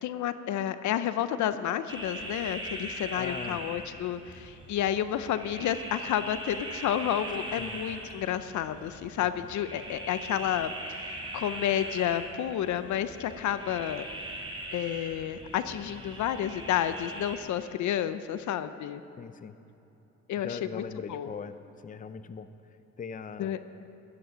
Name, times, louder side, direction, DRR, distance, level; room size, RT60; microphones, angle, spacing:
voice 1, 0.0-14.1 14.7-19.0 20.3-20.8 21.1-21.3 23.4-23.6, left 10 dB, 70° left, 12 dB, 0.6 m, -30 dB
Frogs Nettle Sample, 1.9-17.4, right 1 dB, 15° right, 2.5 m, -41 dB
voice 2, 3.2-3.7 7.6-7.8 9.2-9.3 19.2-19.5 20.4-21.6 21.8-22.5 23.0-23.6, left 6 dB, 25° left, 12 dB, 0.6 m, -40 dB
14.0 x 11.5 x 5.1 m, 2.9 s
cardioid pair, 90°, 30 cm